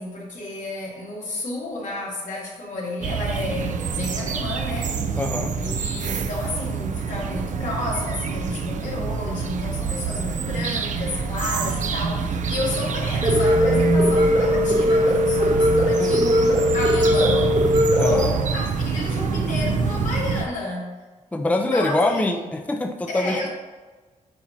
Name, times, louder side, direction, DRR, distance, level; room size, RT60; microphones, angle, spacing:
voice 1, 0.0-5.0 5.6-17.6 18.0-20.9 21.5-22.3 23.1-23.5, left 2 dB, 75° left, -4 dB, 2.3 m, -31 dB
sound 1, 3.0-20.4, right 5 dB, 70° right, 0.6 m, -26 dB
voice 2, 5.2-5.6 16.0-16.2 17.9-18.3 21.3-23.5, left 2 dB, 10° left, 5 dB, 0.5 m, -24 dB
sound 2, 13.2-18.2, left 1 dB, 40° right, 1.3 m, -19 dB
8.7 x 2.9 x 5.9 m, 1.3 s
cardioid pair, 95°, 13 cm